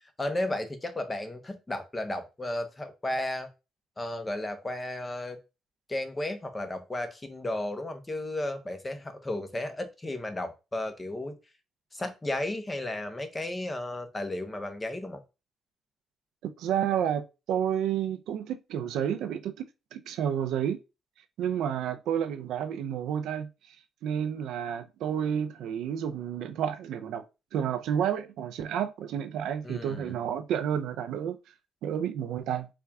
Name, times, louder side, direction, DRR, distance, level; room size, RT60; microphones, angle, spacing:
voice 1, 0.2-3.5 4.0-5.4 5.9-11.4 11.9-15.2 29.6-30.2, left 1 dB, 20° left, 0.8 m, -34 dB
voice 2, 16.4-19.7 19.9-20.8 21.4-23.5 24.0-27.2 27.5-31.4 31.8-32.7, right 9 dB, 85° right, 0.4 m, -30 dB
4.2 x 2.3 x 3.4 m
cardioid pair, 90°, 0 cm